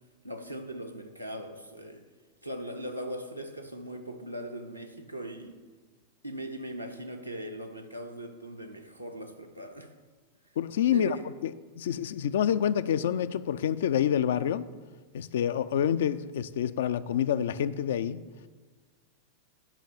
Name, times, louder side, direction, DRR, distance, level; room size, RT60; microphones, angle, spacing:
voice 1, 0.2-2.0 2.4-5.6 6.2-9.9 10.9-11.3, right 1 dB, 90° right, 0.9 m, -39 dB
voice 2, 10.6-11.2 11.4-14.7 15.1-18.2, left 9 dB, 60° left, 0.3 m, -27 dB
9.0 x 5.3 x 7.1 m
figure-of-eight pair, 90°, 0 cm